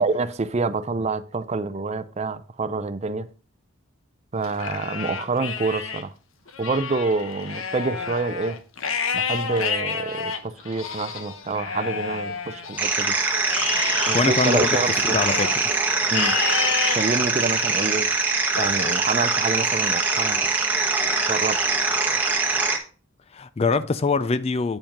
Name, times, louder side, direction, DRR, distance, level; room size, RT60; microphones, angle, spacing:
voice 1, 0.0-3.3 4.3-6.1 6.6-8.6 9.1-13.2 14.1-15.2 16.1-16.4 16.9-18.1 18.5-20.5 21.3-21.6, right 3 dB, 30° right, 0.5 m, -27 dB
Livestock farm animals working animals, 4.4-6.0 6.5-13.0 13.5-15.6 16.1-17.0 17.6-18.0 18.6-19.6, left 6 dB, 70° left, 1.0 m, -30 dB
sound 1, 12.8-22.8, right 3 dB, 10° right, 1.3 m, -23 dB
voice 2, 14.1-14.7 15.0-15.5 23.3-24.8, left 4 dB, 30° left, 0.3 m, -23 dB
8.9 x 4.8 x 5.2 m
head